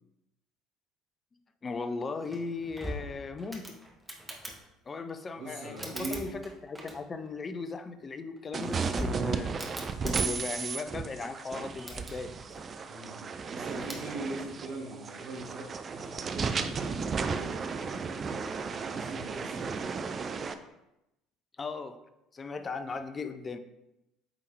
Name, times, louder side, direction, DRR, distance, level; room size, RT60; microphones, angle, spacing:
voice 1, 1.6-3.8 4.9-12.4 21.6-22.0 22.3-23.6, left 4 dB, 30° left, 9 dB, 0.5 m, -37 dB
sound 1, 2.2-4.6 5.6-7.3 8.4-10.3 11.6-12.1 13.8-14.1, equal, 10° right, 1.3 m, -41 dB
voice 2, 5.4-6.3 12.9-18.4 18.9-19.9 22.9-23.0, right 2 dB, 60° right, -4 dB, 1.4 m, -42 dB
sound 2, 8.5-20.5, right 5 dB, 35° right, 0.5 m, -34 dB
sound 3, 8.8-9.4 12.5-13.2, equal, 5° left, 0.9 m, -53 dB
8.5 x 3.5 x 3.3 m, 0.89 s
figure-of-eight pair, 60°, 0 cm